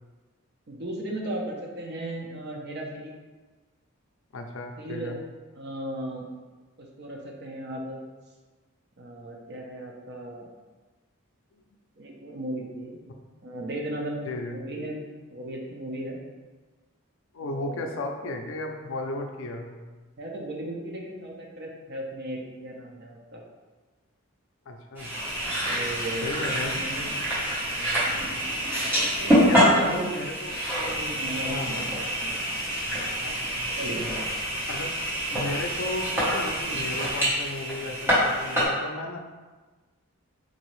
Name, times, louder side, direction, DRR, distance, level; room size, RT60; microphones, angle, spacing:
voice 1, 0.7-3.1 4.8-5.2 5.6-6.2 6.8-8.0 9.0-10.5 12.0-13.0 13.4-15.0 15.3-16.2 17.4-17.9 20.2-23.4 25.7-26.3 26.7-27.1 27.8-28.1 28.9-30.2 30.8-31.9 32.2-32.4 33.8-34.2, right 1 dB, 50° right, -1 dB, 0.6 m, -36 dB
voice 2, 4.3-5.2 14.2-14.6 17.3-19.8 24.7-25.1 26.2-26.8 29.4-30.6 31.4-31.9 33.2-33.6 34.7-35.0 35.3-39.2, left 2 dB, 60° left, 3 dB, 0.4 m, -34 dB
sound 1, 25.0-38.7, equal, 10° right, 0.9 m, -26 dB
3.9 x 2.7 x 3.0 m, 1.3 s
head